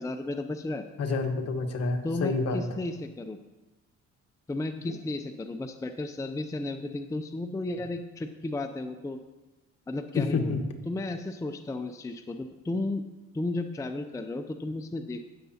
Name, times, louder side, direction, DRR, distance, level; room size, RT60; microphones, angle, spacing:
voice 1, 0.0-0.9 2.0-3.4 4.5-9.2 9.9-13.0 13.3-15.3, left 2 dB, 10° left, 7 dB, 0.5 m, -34 dB
voice 2, 1.0-2.7 4.8-4.9 10.1-10.6, left 3 dB, 55° left, 4 dB, 1.3 m, -28 dB
17.5 x 6.7 x 2.8 m, 1.1 s
cardioid pair, 90°, 30 cm